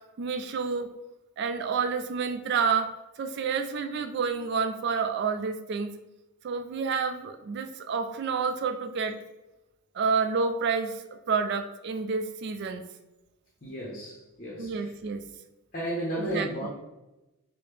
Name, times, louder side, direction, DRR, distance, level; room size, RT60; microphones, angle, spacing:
voice 1, 0.2-0.9 1.4-2.9 3.2-5.9 6.4-9.2 9.9-12.8 14.6-15.2 16.1-16.7, right 5 dB, 50° right, 8 dB, 0.3 m, -29 dB
voice 2, 13.6-14.9 15.7-16.7, right 1 dB, 40° left, -4 dB, 0.6 m, -33 dB
4.7 x 2.0 x 3.1 m, 1.0 s
head